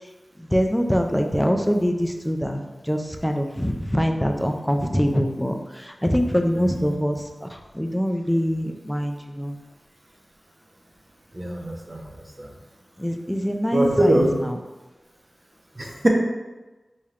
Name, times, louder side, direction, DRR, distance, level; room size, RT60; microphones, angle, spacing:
voice 1, 0.4-9.6 13.0-14.2 14.4-14.5, equal, 5° left, 3 dB, 0.4 m, -24 dB
voice 2, 6.5-6.9 11.3-12.1 12.4-12.5 13.7-14.3 15.8-16.1, right 1 dB, 30° right, 0 dB, 0.7 m, -23 dB
4.2 x 3.2 x 2.4 m, 1.1 s
wide cardioid pair, 60°, 0 cm